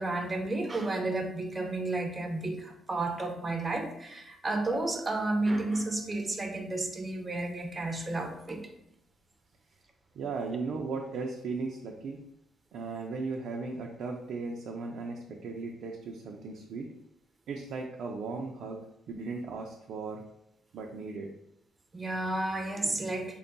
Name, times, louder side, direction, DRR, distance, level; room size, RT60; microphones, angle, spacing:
voice 1, 0.0-8.7 21.9-23.4, right 2 dB, 25° right, 4 dB, 0.5 m, -32 dB
sound 1, 4.7-14.3, left 1 dB, 20° left, 0.8 m, -53 dB
voice 2, 10.1-12.2 12.7-16.9 17.5-18.8 19.1-20.2 20.7-21.3, right 4 dB, 75° right, 0 dB, 0.4 m, -37 dB
3.5 x 2.2 x 3.9 m, 0.80 s
cardioid pair, 90°, 0 cm